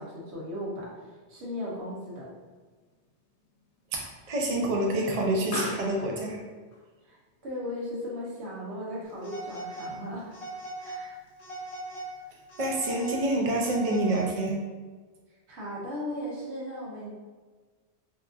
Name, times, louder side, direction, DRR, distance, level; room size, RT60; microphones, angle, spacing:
voice 1, 0.0-2.3 7.0-7.2 7.4-10.3 10.8-11.2 15.5-17.1, left 1 dB, 80° right, -5 dB, 1.1 m, -37 dB
Explosion, 1.4-10.3, left 2 dB, 85° left, 0.9 m, -44 dB
voice 2, 4.3-6.4 12.6-14.6, right 1 dB, 50° right, -1 dB, 0.4 m, -27 dB
Telephone, 9.2-9.9 10.3-11.0 11.4-12.1 12.5-14.5, right 2 dB, 65° left, 1.0 m, -39 dB
2.8 x 2.4 x 2.4 m, 1.4 s
omnidirectional pair, 1.1 m